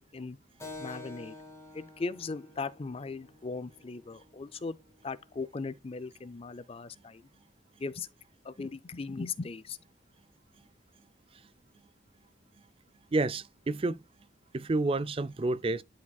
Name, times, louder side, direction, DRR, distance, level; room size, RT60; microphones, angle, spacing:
Keyboard (musical), 0.6-5.7, left 2 dB, 15° left, 2.1 m, -49 dB
voice 1, 0.8-1.3 1.7-4.8 5.0-7.2 7.8-8.1 8.4-9.8, left 4 dB, 30° left, 0.4 m, -38 dB
voice 2, 13.1-14.0 14.5-15.8, right 2 dB, 30° right, 0.4 m, -29 dB
11.5 x 5.0 x 2.3 m
head